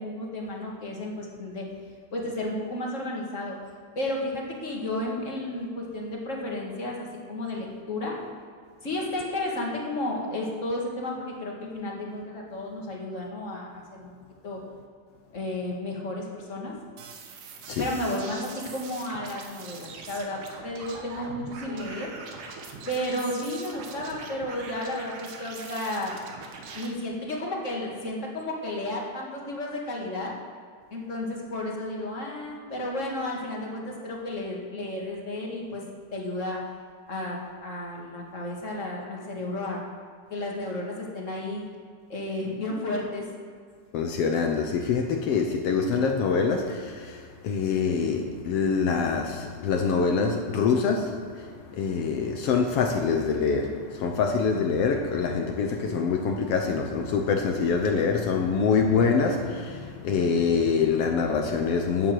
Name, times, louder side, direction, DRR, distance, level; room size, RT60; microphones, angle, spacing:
voice 1, 0.0-1.7 2.1-3.6 4.0-8.2 8.8-14.1 14.4-14.6 15.3-16.7 17.8-22.1 22.9-26.1 26.7-30.3 30.9-35.8 36.1-36.6 37.1-39.8 40.3-41.6 42.1-43.3, left 1 dB, 30° left, 2.0 m, -32 dB
sound 1, 17.0-26.9, right 4 dB, 80° right, 2.7 m, -42 dB
voice 2, 43.9-62.1, left 5 dB, 70° left, 1.5 m, -25 dB
11.5 x 7.3 x 7.7 m
omnidirectional pair, 3.6 m